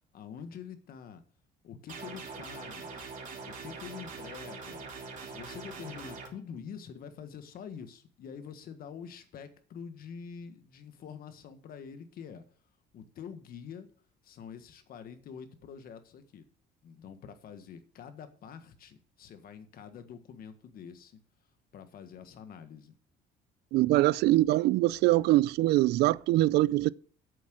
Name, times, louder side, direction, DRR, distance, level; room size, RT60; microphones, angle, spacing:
voice 1, 0.1-1.2 1.6-3.1 3.4-4.9 5.2-12.4 12.9-13.9 14.2-16.4 16.8-21.2 21.7-22.9, left 7 dB, 60° left, 1.6 m, -46 dB
sound 1, 1.9-6.3, right 4 dB, 50° right, 3.2 m, -43 dB
voice 2, 23.7-26.9, right 17 dB, 80° right, 0.4 m, -23 dB
8.5 x 7.3 x 6.3 m
cardioid pair, 110°, 17 cm